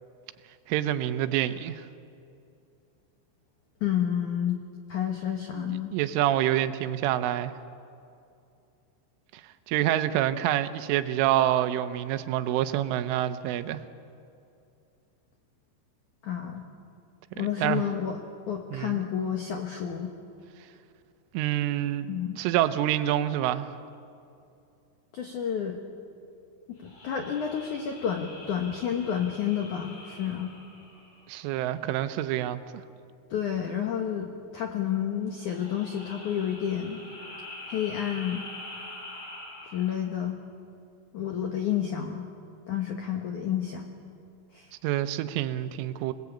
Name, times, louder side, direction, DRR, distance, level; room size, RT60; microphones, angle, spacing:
voice 1, 0.7-1.9 5.5-7.5 9.3-9.4 9.7-13.8 17.6-17.8 18.7-19.0 21.3-22.1 22.4-23.7 31.3-32.6 44.8-46.1, right 12 dB, 85° right, 12 dB, 3.3 m, -27 dB
voice 2, 3.8-4.6 4.9-5.9 16.2-16.6 17.3-18.2 18.5-20.1 22.1-22.4 25.1-25.8 26.7-30.5 33.3-37.0 37.7-38.4 39.7-40.4 41.1-42.3 42.7-43.9 44.5-44.7, left 9 dB, 75° left, 3 dB, 1.8 m, -30 dB
sound 1, 26.8-31.6 35.4-40.1, left 2 dB, 40° left, 5.8 m, -45 dB
26.5 x 19.5 x 8.6 m, 2.6 s
omnidirectional pair, 5.7 m